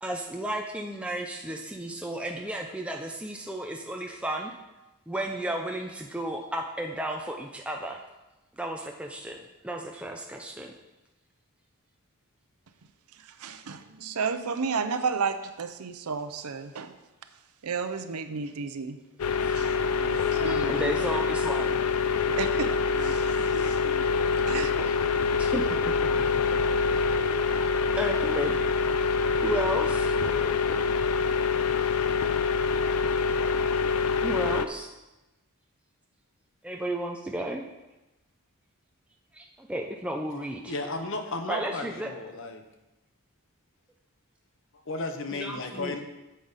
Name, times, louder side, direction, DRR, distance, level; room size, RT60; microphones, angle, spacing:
voice 1, 0.0-4.5 5.1-8.0 8.6-10.7 20.4-21.8 25.4-26.8 28.0-28.6 29.4-30.2 34.2-34.9 36.6-37.6 39.3-40.7 41.5-42.1 45.3-46.0, right 1 dB, 5° right, 1 dB, 0.5 m, -33 dB
voice 2, 13.4-16.9 17.6-19.0 19.6-20.9 22.3-24.0 24.3-24.7, right 5 dB, 80° right, 10 dB, 0.6 m, -33 dB
sound 1, 19.2-34.7, left 5 dB, 80° left, 0.5 m, -25 dB
voice 3, 40.7-42.6 44.9-46.0, left 2 dB, 60° left, 6 dB, 0.9 m, -34 dB
8.7 x 7.8 x 4.1 m, 1.0 s
head